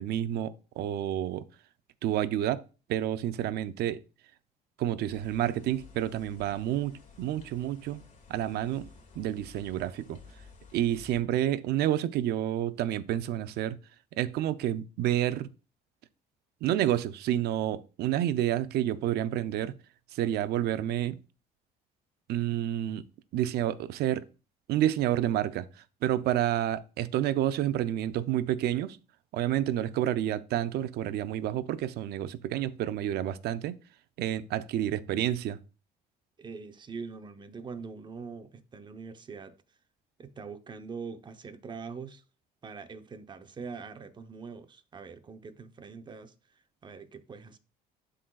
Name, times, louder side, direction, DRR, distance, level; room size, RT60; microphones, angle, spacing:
voice 1, 0.0-1.4 2.0-2.6 2.9-4.0 4.8-8.0 8.3-8.9 9.2-10.2 10.7-13.8 14.1-15.5 16.6-19.7 20.1-21.2 22.3-23.1 23.3-24.3 24.7-25.7 26.0-29.0 29.3-33.8 34.2-35.6, right 12 dB, 70° right, 0.5 m, -29 dB
sound 1, 5.1-11.2, left 5 dB, 50° left, 1.6 m, -53 dB
voice 2, 36.4-39.6 40.2-42.2 42.6-47.6, right 5 dB, 25° right, 0.7 m, -43 dB
11.5 x 3.8 x 2.3 m
cardioid pair, 110°, 17 cm